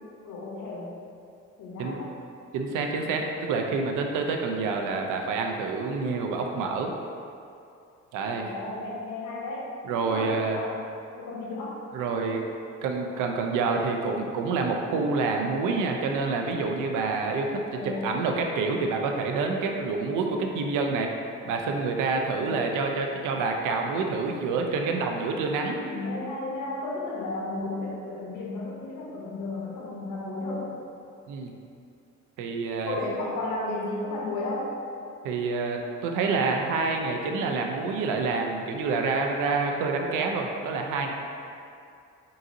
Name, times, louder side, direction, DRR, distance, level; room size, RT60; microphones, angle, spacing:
voice 1, 0.2-1.0 1.6-2.2 3.0-3.1 8.4-9.7 10.0-10.8 11.1-11.9 17.7-18.2 22.3-22.7 25.6-30.8 32.9-34.8, left 2 dB, 85° left, -3 dB, 0.9 m, -34 dB
voice 2, 2.5-6.9 8.1-8.5 9.8-10.6 11.9-12.5 12.8-21.1 21.4-25.7 31.3-31.5 32.4-33.0 35.2-41.1, right 4 dB, 90° right, 2 dB, 0.5 m, -27 dB
4.0 x 3.8 x 2.6 m, 2.5 s
cardioid pair, 90°, 30 cm